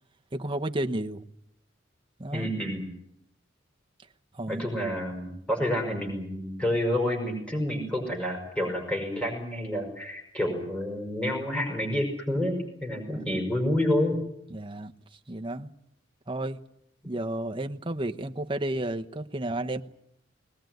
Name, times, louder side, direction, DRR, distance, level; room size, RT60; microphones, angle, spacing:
voice 1, 0.3-1.2 2.2-2.5 4.3-4.7 13.3-13.4 14.5-14.9 15.3-15.7 16.3-16.6 17.1-19.8, right 1 dB, 25° right, 5 dB, 1.0 m, -32 dB
voice 2, 2.3-2.9 4.5-14.2, left 1 dB, 5° left, 2 dB, 5.6 m, -29 dB
21.5 x 20.0 x 9.4 m, 0.77 s
head